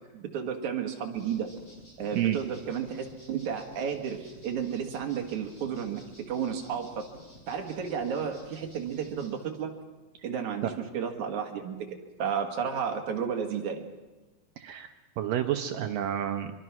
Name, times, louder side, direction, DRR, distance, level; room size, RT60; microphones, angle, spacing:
voice 1, 0.1-1.5 2.0-7.0 7.5-9.7 10.2-11.9 12.2-13.8, right 7 dB, 55° right, 3 dB, 2.7 m, -32 dB
sound 1, 1.1-9.3, equal, 20° left, 6.2 m, -52 dB
voice 2, 14.6-16.5, right 11 dB, 75° right, 6 dB, 2.0 m, -30 dB
24.0 x 23.5 x 6.1 m, 1.1 s
omnidirectional pair, 4.9 m